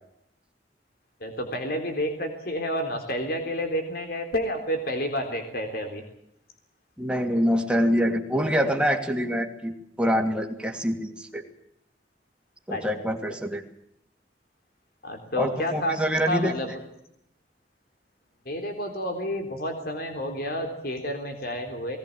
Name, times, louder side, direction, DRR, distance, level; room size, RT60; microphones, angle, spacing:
voice 1, 1.2-6.0 12.7-13.1 15.0-16.7 18.5-22.0, equal, 55° left, 5 dB, 3.6 m, -30 dB
voice 2, 7.0-11.4 12.7-13.6 15.4-16.5, equal, 5° right, 3 dB, 2.6 m, -25 dB
20.5 x 19.0 x 8.6 m, 0.77 s
head